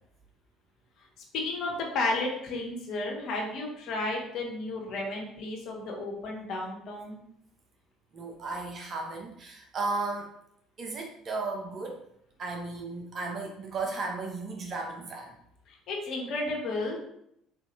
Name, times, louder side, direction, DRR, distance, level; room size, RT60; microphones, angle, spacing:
voice 1, 1.3-7.2 15.9-17.1, left 2 dB, 60° left, 0 dB, 1.0 m, -32 dB
voice 2, 8.1-10.3 10.8-12.0 12.4-15.4, right 3 dB, 50° right, 1 dB, 0.7 m, -35 dB
4.2 x 2.6 x 3.0 m, 0.75 s
hypercardioid pair, 65°, 0 cm